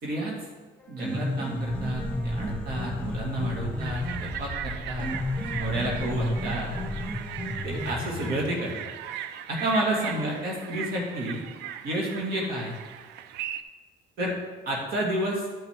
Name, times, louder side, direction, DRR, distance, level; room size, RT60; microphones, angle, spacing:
voice 1, 0.0-0.4 0.9-5.1 5.6-6.7 7.6-8.9 9.5-11.4 11.8-12.8 14.2-14.3 14.7-15.5, right 1 dB, 70° right, -3 dB, 2.3 m, -30 dB
Piano, 0.8-8.8, left 1 dB, 5° left, 1.2 m, -33 dB
sound 1, 2.4-7.9, left 1 dB, 25° right, 2.8 m, -39 dB
sound 2, 3.8-13.6, right 10 dB, 85° right, 0.5 m, -39 dB
11.5 x 5.6 x 3.7 m, 1.3 s
cardioid pair, 110°, 17 cm